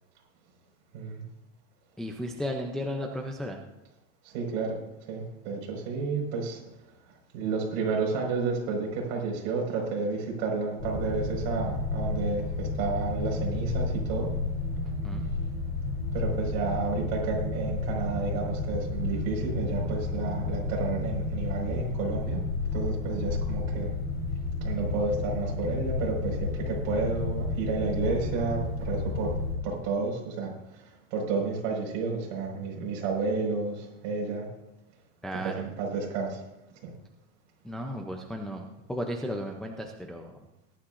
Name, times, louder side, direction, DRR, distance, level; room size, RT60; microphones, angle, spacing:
voice 1, 2.0-3.6 15.0-15.3 35.2-35.6 37.6-38.6 38.9-40.3, equal, ahead, 1 dB, 0.4 m, -34 dB
voice 2, 4.2-6.6 7.3-14.3 16.1-22.4 22.7-23.9 24.6-29.4 29.6-30.5 31.1-34.5 35.4-36.4 36.8-36.9, right 4 dB, 50° right, -1 dB, 5.1 m, -31 dB
sound 1, 10.8-29.6, left 3 dB, 15° left, 3.1 m, -31 dB
19.5 x 11.5 x 2.5 m, 0.90 s
supercardioid pair, 160°, 38 cm